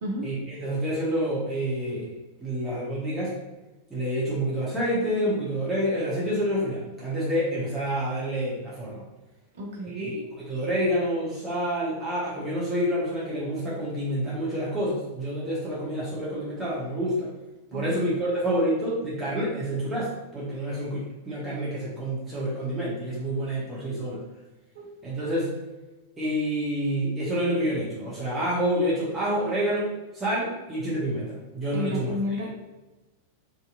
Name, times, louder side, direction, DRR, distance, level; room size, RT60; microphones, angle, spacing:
voice 1, 0.2-3.3 3.9-9.0 9.9-17.3 17.7-24.2 25.0-25.5 26.2-32.1, equal, 10° right, -8 dB, 0.8 m, -28 dB
voice 2, 9.5-10.2 17.7-18.0 24.7-24.9 31.7-32.5, left 1 dB, 60° right, -1 dB, 0.6 m, -32 dB
2.7 x 2.4 x 2.4 m, 1.1 s
figure-of-eight pair, 90°, 0 cm